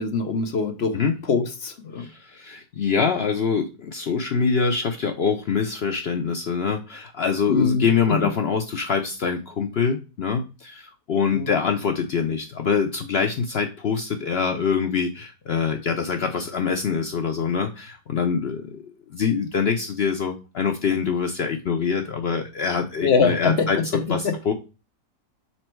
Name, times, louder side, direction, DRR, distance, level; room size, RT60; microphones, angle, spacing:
voice 1, 0.0-1.0 1.3-2.1 7.5-8.2 11.3-11.5 23.0-23.7 24.2-24.3, left 5 dB, 50° left, 0.8 m, -23 dB
voice 2, 2.0-18.8 19.1-24.5, left 6 dB, 80° left, 0.5 m, -24 dB
6.0 x 4.3 x 4.4 m
omnidirectional pair, 1.8 m